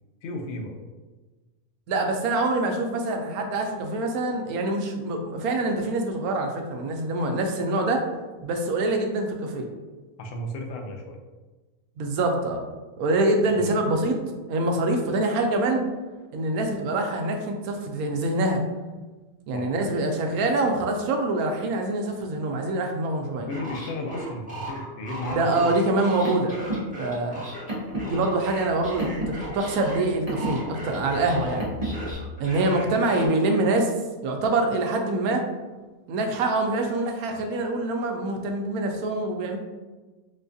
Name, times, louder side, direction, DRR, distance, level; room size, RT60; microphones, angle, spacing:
voice 1, 0.2-0.8 10.2-11.2 13.5-13.8 19.5-19.7 23.3-25.7 31.5-31.6, left 1 dB, 65° left, 2 dB, 0.7 m, -34 dB
voice 2, 1.9-8.0 8.4-9.7 12.0-12.6 13.0-14.2 14.5-15.8 16.3-18.6 19.5-23.5 25.3-26.6 27.0-27.4 28.0-31.6 32.4-33.9 34.2-35.4 36.1-39.6, right 2 dB, 80° right, 3 dB, 1.0 m, -25 dB
sound 1, 23.5-30.0 30.3-33.3, right 1 dB, 5° right, 1.0 m, -37 dB
Car, 25.9-32.1, right 1 dB, 30° right, 0.8 m, -33 dB
4.2 x 2.3 x 2.6 m, 1.2 s
omnidirectional pair, 1.5 m